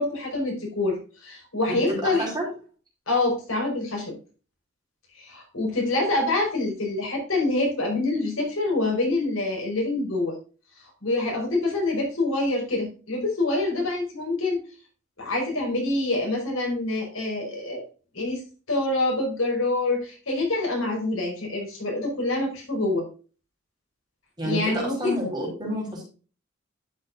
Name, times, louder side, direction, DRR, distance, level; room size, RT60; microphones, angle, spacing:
voice 1, 0.0-2.3 3.1-4.1 5.1-10.4 10.8-14.6 15.2-17.8 18.1-18.4 18.7-23.0 24.4-25.2, left 2 dB, 85° left, -1 dB, 5.0 m, -26 dB
voice 2, 1.7-2.5 24.4-26.0, right 1 dB, 20° right, -2 dB, 4.6 m, -29 dB
12.0 x 6.7 x 2.5 m, 0.36 s
head